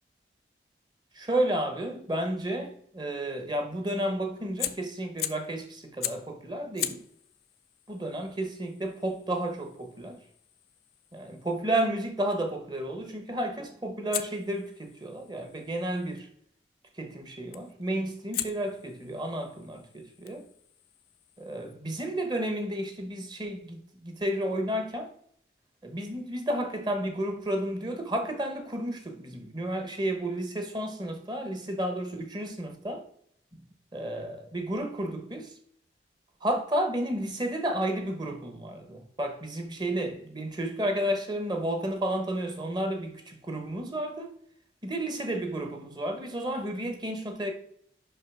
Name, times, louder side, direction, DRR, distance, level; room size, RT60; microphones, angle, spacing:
voice 1, 1.1-7.0 7.9-10.2 11.1-16.3 17.0-20.4 21.4-25.1 25.8-33.0 33.5-33.6 33.9-35.5 36.4-44.4 44.8-47.5, right 1 dB, 25° right, 1.0 m, -32 dB
Fire, 4.6-5.6 6.0-6.4 6.8-11.7 14.1-16.2 17.5-17.8 18.3-21.8, left 13 dB, 55° left, 0.5 m, -40 dB
5.7 x 5.5 x 4.8 m
head